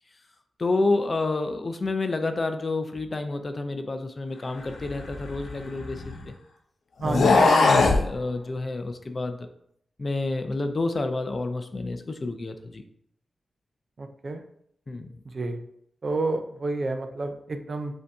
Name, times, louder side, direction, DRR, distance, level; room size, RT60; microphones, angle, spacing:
voice 1, 0.6-6.3 7.0-9.5 10.0-12.8 14.9-15.2, left 2 dB, 35° left, 8 dB, 0.4 m, -29 dB
sound 1, 4.8-6.3 7.0-8.1, left 3 dB, 85° left, 0.6 m, -21 dB
voice 2, 7.0-7.4 14.0-14.4 15.3-15.6 16.0-17.9, right 2 dB, 45° right, 7 dB, 0.4 m, -29 dB
5.3 x 2.7 x 3.4 m, 0.70 s
wide cardioid pair, 120°, 0 cm